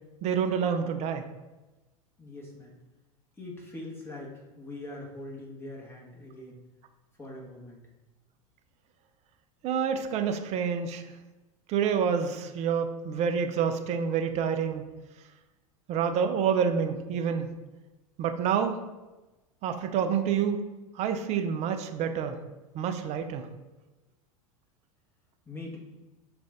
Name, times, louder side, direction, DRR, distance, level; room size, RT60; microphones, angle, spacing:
voice 1, 0.2-1.3 9.6-11.1 11.7-14.9 15.9-17.5 18.2-18.8 19.6-20.6 20.9-22.4 22.7-23.5, right 7 dB, 35° right, 7 dB, 0.5 m, -28 dB
voice 2, 2.2-2.7 3.4-6.6 7.2-7.8 25.5-25.8, left 2 dB, 15° left, -3 dB, 1.3 m, -42 dB
5.1 x 2.5 x 3.4 m, 1.1 s
hypercardioid pair, 85°, 18 cm